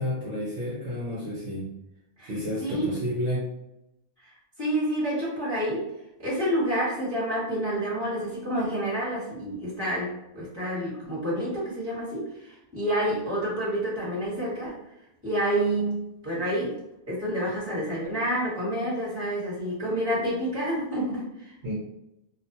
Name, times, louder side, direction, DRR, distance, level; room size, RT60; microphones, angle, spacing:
voice 1, 0.0-1.7 2.3-3.5 21.6-21.8, equal, 60° right, -7 dB, 0.9 m, -30 dB
voice 2, 2.2-2.9 4.2-5.9 6.2-14.8 15.2-16.8 17.1-21.5, right 1 dB, 20° right, -8 dB, 1.2 m, -29 dB
2.6 x 2.2 x 2.7 m, 0.89 s
omnidirectional pair, 1.4 m